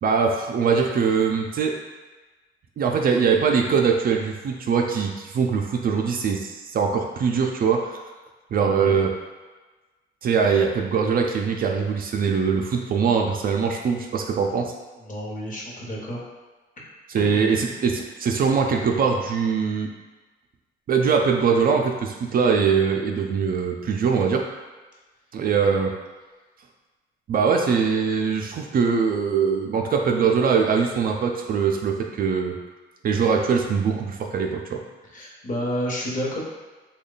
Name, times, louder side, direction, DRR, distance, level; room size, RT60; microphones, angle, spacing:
voice 1, 0.0-1.7 2.8-8.0 8.5-9.1 10.2-14.7 17.1-19.9 20.9-24.4 25.3-25.9 27.3-32.6 33.0-34.8, right 6 dB, 50° right, 2 dB, 0.4 m, -22 dB
voice 2, 15.0-16.2 17.1-17.4 35.1-36.4, equal, 40° left, -3 dB, 1.0 m, -30 dB
3.1 x 2.2 x 3.8 m, 1.2 s
cardioid pair, 90°, 20 cm